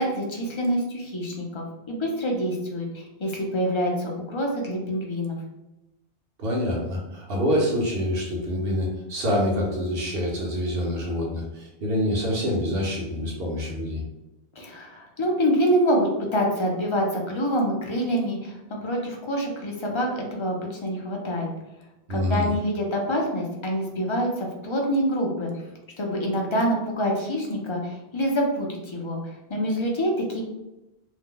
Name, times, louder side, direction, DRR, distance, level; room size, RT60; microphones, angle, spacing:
voice 1, 0.0-5.4 14.6-21.5 22.1-25.6 26.0-30.4, equal, 35° left, -1 dB, 0.5 m, -26 dB
voice 2, 6.4-14.0 22.1-22.5, left 1 dB, 60° right, -2 dB, 1.1 m, -26 dB
2.7 x 2.1 x 3.7 m, 0.94 s
omnidirectional pair, 1.1 m